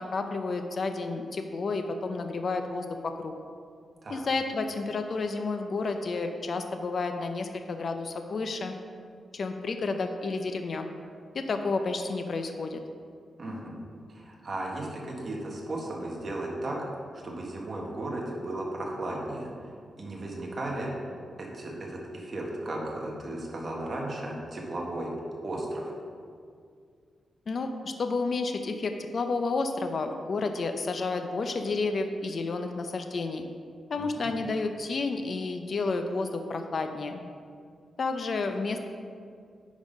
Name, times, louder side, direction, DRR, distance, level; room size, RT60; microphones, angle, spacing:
voice 1, 0.0-3.3 4.1-8.8 9.3-10.8 11.3-12.8 27.5-33.4 33.9-37.2 38.0-38.9, left 3 dB, 50° left, 6 dB, 0.5 m, -31 dB
voice 2, 13.4-13.8 14.1-16.8 17.2-19.7 20.0-20.9 21.4-25.1 25.4-25.9 33.9-34.3, right 1 dB, 40° right, -2 dB, 1.6 m, -35 dB
9.7 x 4.1 x 5.2 m, 2.2 s
wide cardioid pair, 120°, 0 cm